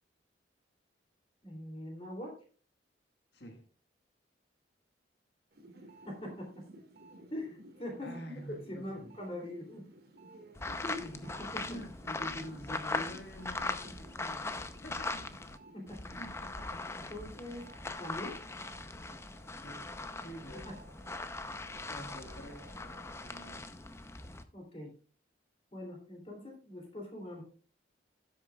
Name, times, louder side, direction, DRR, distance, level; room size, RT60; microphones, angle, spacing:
voice 1, 1.4-2.3 6.1-6.6 7.3-9.8 10.8-11.0 11.4-11.8 15.7-16.0 17.0-17.6 18.0-18.4 20.5-20.8 24.5-24.9 25.7-27.4, left 1 dB, 30° left, 0 dB, 2.9 m, -42 dB
voice 2, 3.3-3.6 8.0-9.1 10.7-11.3 11.7-14.5 14.8-15.3 16.1-16.3 16.7-17.1 19.6-19.9 20.2-20.7 21.9-22.7 23.2-23.7, equal, 60° left, 3 dB, 1.6 m, -47 dB
sound 1, 5.5-16.8 17.2-23.5, right 1 dB, 55° right, 1.9 m, -56 dB
sound 2, 10.5-15.6 15.9-24.4, left 3 dB, 15° left, 0.6 m, -40 dB
15.5 x 8.2 x 2.3 m, 0.38 s
head